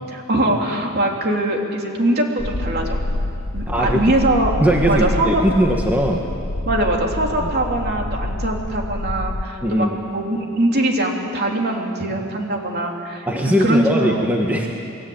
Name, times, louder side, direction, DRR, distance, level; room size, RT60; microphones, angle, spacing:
voice 1, 0.1-3.2 3.5-4.5 4.9-5.4 6.6-14.3, right 1 dB, 45° right, 1 dB, 3.4 m, -22 dB
sound 1, 2.4-9.4, left 1 dB, 70° left, 1.1 m, -26 dB
voice 2, 3.7-4.1 4.6-6.2 7.4-7.5 9.6-9.9 13.3-14.7, equal, 10° right, 0 dB, 1.5 m, -19 dB
29.5 x 20.5 x 8.9 m, 2.6 s
head